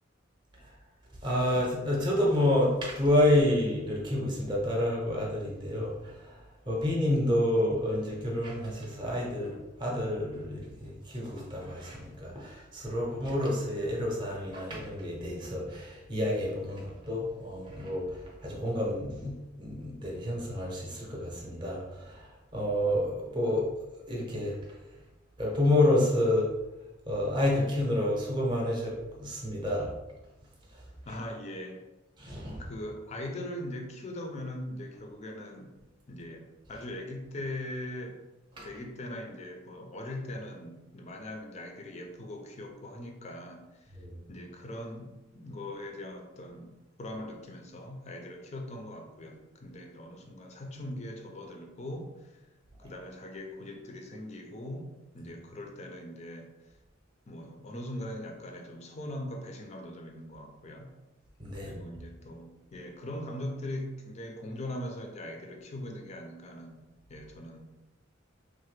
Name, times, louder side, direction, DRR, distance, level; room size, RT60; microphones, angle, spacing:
voice 1, 1.2-6.4 6.7-23.7 24.1-24.6 25.4-26.5 27.1-29.9 30.7-30.8 32.2-32.6 38.5-38.7 44.0-44.2 61.4-61.8, left 1 dB, 25° right, -3 dB, 0.6 m, -29 dB
voice 2, 31.0-31.9 32.6-35.7 36.1-38.2 38.6-44.0 44.3-46.7 47.0-52.5 52.8-56.5 57.3-60.9 61.5-67.6, left 1 dB, 35° left, 3 dB, 0.4 m, -41 dB
3.1 x 2.1 x 3.1 m, 1.0 s
head